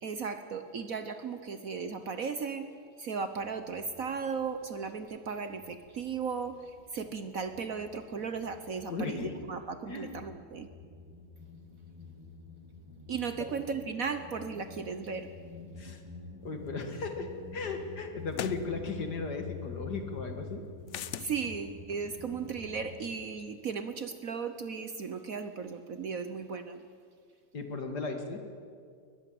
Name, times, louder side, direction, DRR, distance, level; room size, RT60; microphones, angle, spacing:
voice 1, 0.0-2.7 3.0-10.7 13.1-15.3 21.2-26.8, right 5 dB, 55° right, 9 dB, 1.2 m, -36 dB
sound 1, 3.4-5.0 5.3-23.1, left 4 dB, 15° right, 3.3 m, -48 dB
voice 2, 8.9-9.3 9.9-10.1 13.4-13.5 15.8-16.0 16.4-20.6 27.5-28.4, left 4 dB, 55° left, 5 dB, 2.6 m, -36 dB
sound 2, 16.9-17.0 18.3-18.7 20.9-21.3, left 10 dB, 80° left, 0.6 m, -37 dB
22.5 x 19.5 x 7.8 m, 2.2 s
omnidirectional pair, 2.1 m